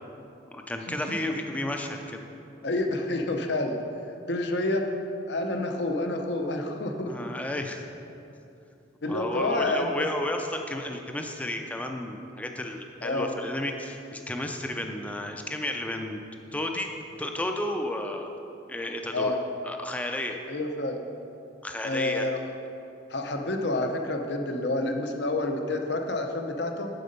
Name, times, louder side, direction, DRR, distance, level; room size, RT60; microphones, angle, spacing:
voice 1, 0.5-2.2 7.1-7.8 9.1-16.2 16.5-16.9 17.2-18.3 18.7-19.4 19.6-20.4 21.6-22.3, left 1 dB, 5° left, 3 dB, 0.5 m, -32 dB
voice 2, 2.6-3.8 4.3-4.9 5.3-7.3 9.0-9.9 13.0-13.3 19.1-19.4 20.5-21.0 21.8-22.4 23.1-26.9, left 2 dB, 60° left, 4 dB, 0.8 m, -28 dB
7.9 x 7.6 x 5.3 m, 2.7 s
head